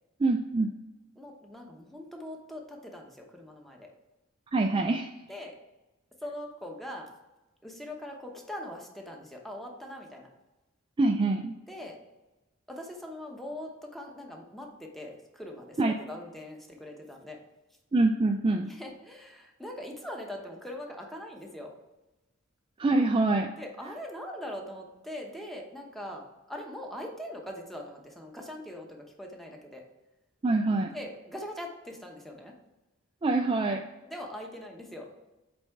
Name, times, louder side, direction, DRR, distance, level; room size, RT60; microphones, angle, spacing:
voice 1, 0.2-0.7 4.5-5.1 11.0-11.5 15.8-15.9 17.9-18.7 22.8-23.5 30.4-30.9 33.2-33.8, right 2 dB, 25° right, 3 dB, 0.3 m, -25 dB
voice 2, 1.2-3.9 5.3-5.6 6.2-7.1 7.6-10.3 11.7-12.0 12.7-17.4 18.6-21.8 23.6-29.8 30.9-32.5 34.1-35.1, left 1 dB, ahead, 1 dB, 0.9 m, -41 dB
8.3 x 3.4 x 4.6 m, 1.1 s
head